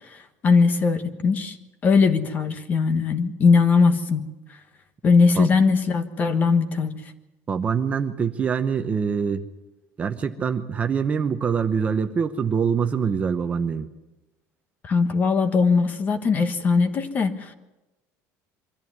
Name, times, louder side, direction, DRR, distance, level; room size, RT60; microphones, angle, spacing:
voice 1, 0.1-1.6 1.8-4.3 5.0-7.0 14.8-17.5, left 4 dB, 25° left, 10 dB, 1.4 m, -20 dB
voice 2, 7.5-9.5 10.0-13.9, right 6 dB, 20° right, 7 dB, 0.8 m, -24 dB
24.0 x 14.0 x 9.5 m, 1.0 s
cardioid pair, 175°, 6 cm